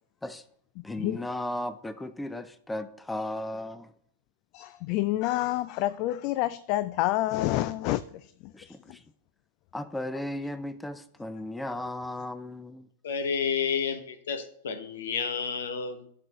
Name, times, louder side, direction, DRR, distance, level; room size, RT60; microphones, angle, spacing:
voice 1, 0.8-3.9 8.5-9.0 9.7-12.9, left 1 dB, 10° left, 0.6 m, -35 dB
voice 2, 4.5-8.0 8.7-8.8, left 16 dB, 50° left, 0.3 m, -28 dB
voice 3, 13.0-16.1, left 6 dB, 75° left, 1.1 m, -30 dB
12.0 x 6.7 x 3.0 m
hypercardioid pair, 100°, 0 cm